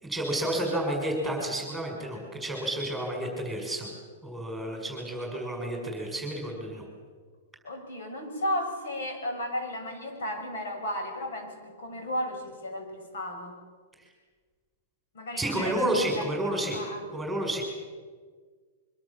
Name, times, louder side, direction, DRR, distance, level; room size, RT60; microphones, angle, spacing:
voice 1, 0.0-3.9 4.2-6.9 15.4-16.8 17.1-17.6, right 1 dB, ahead, 1 dB, 5.9 m, -30 dB
voice 2, 7.6-13.6 15.1-17.1, left 1 dB, 70° left, 5 dB, 7.3 m, -34 dB
24.0 x 23.5 x 7.3 m, 1.5 s
supercardioid pair, 170°, 0 cm